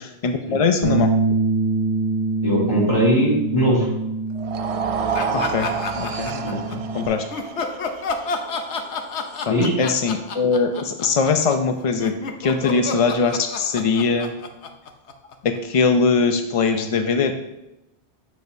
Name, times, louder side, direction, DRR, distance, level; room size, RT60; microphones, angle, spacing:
voice 1, 0.2-1.1 5.3-5.7 6.0-7.2 9.5-12.1 12.4-14.3 15.4-17.3, left 4 dB, 60° left, 6 dB, 0.3 m, -21 dB
Bass guitar, 0.8-7.1, right 3 dB, 50° right, 1.2 m, -25 dB
voice 2, 2.4-3.9 6.4-6.6 6.9-7.0 9.5-9.7, equal, 25° left, -7 dB, 2.7 m, -20 dB
sound 1, 4.3-10.6, right 6 dB, 75° right, 0.3 m, -30 dB
sound 2, 5.1-6.8 7.3-15.6, left 4 dB, 80° left, 1.0 m, -29 dB
8.2 x 6.9 x 2.6 m, 0.91 s
omnidirectional pair, 1.1 m